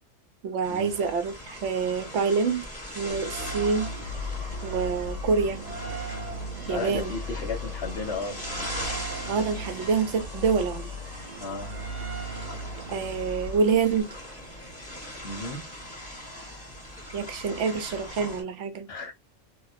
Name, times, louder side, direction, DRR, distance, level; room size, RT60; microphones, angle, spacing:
voice 1, 0.4-2.7 2.9-3.9 4.6-5.6 6.7-7.1 9.3-10.9 12.9-14.1 17.1-18.9, right 5 dB, 70° right, 1.0 m, -26 dB
sound 1, 0.6-18.4, left 1 dB, 5° left, 1.7 m, -40 dB
sound 2, 3.1-14.0, right 1 dB, 45° right, 0.7 m, -37 dB
voice 2, 6.7-8.5 11.4-11.7 15.2-15.6 18.9-19.1, left 3 dB, 55° left, 1.3 m, -34 dB
2.9 x 2.8 x 2.5 m
omnidirectional pair, 1.3 m